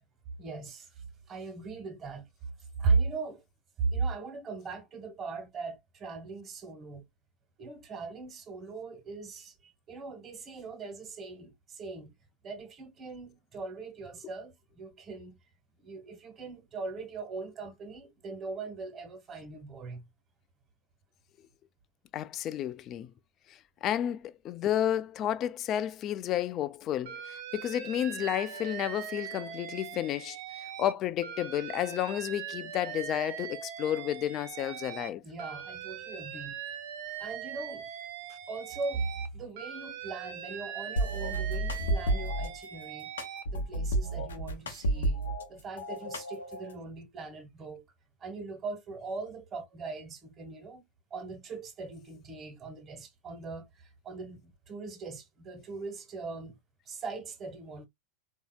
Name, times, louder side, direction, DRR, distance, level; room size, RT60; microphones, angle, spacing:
voice 1, 0.4-2.3 2.8-3.4 3.8-7.0 7.6-12.1 12.4-15.4 15.8-20.1 35.2-36.6 37.2-37.9 38.5-43.1 43.5-45.2 45.5-47.8 48.2-50.8 51.1-56.6 56.8-57.9, right 4 dB, 30° right, 1.4 m, -38 dB
voice 2, 22.1-23.1 23.5-35.2, left 11 dB, 40° left, 0.4 m, -32 dB
Alarm, 27.1-30.9 31.2-35.1 35.4-39.3 39.6-43.4, right 9 dB, 55° right, 0.6 m, -41 dB
sound 1, 41.0-42.5 43.2-45.5 45.8-46.7, right 1 dB, 80° left, 0.7 m, -31 dB
3.8 x 2.7 x 2.3 m
figure-of-eight pair, 90°, 0 cm